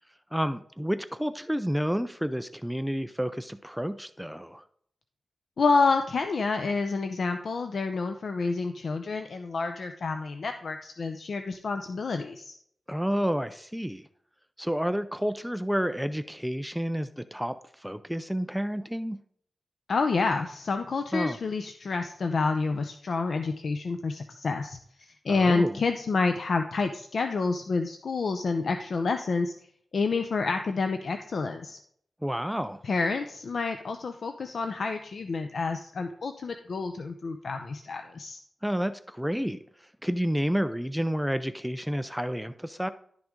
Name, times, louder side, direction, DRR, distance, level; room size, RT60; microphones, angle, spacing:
voice 1, 0.3-4.6 12.9-14.1 14.6-19.2 21.1-21.4 25.3-25.8 32.2-32.8 38.6-42.9, equal, ahead, 11 dB, 0.4 m, -30 dB
voice 2, 5.6-12.5 19.9-24.8 25.2-29.5 29.9-31.8 32.8-38.4, left 4 dB, 70° left, 7 dB, 0.6 m, -28 dB
11.5 x 6.1 x 3.7 m, 0.64 s
wide cardioid pair, 90°, 0 cm